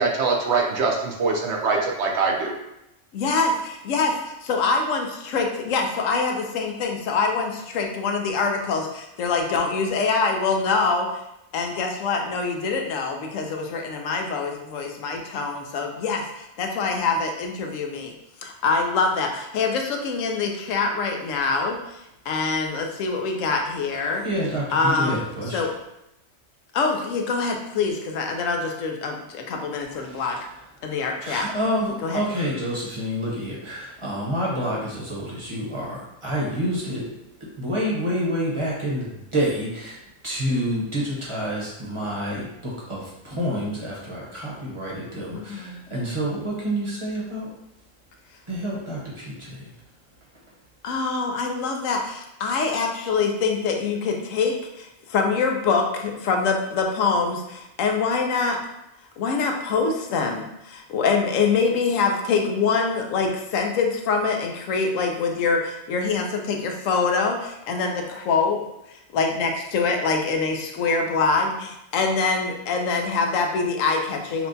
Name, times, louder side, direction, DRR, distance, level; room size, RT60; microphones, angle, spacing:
voice 1, 0.0-2.5, right 4 dB, 65° right, 1 dB, 0.8 m, -23 dB
voice 2, 3.1-11.1 11.5-18.1 18.4-24.2 24.7-25.2 25.5-25.7 26.7-29.2 29.5-30.3 30.8-31.5 32.0-32.2 45.3-45.9 50.8-58.6 59.2-74.5, left 4 dB, 85° left, 3 dB, 1.0 m, -24 dB
voice 3, 24.2-25.6 31.2-37.1 37.4-40.0 40.2-47.5 48.5-49.7, equal, 25° right, -5 dB, 0.8 m, -28 dB
5.8 x 2.2 x 2.6 m, 0.86 s
omnidirectional pair, 1.3 m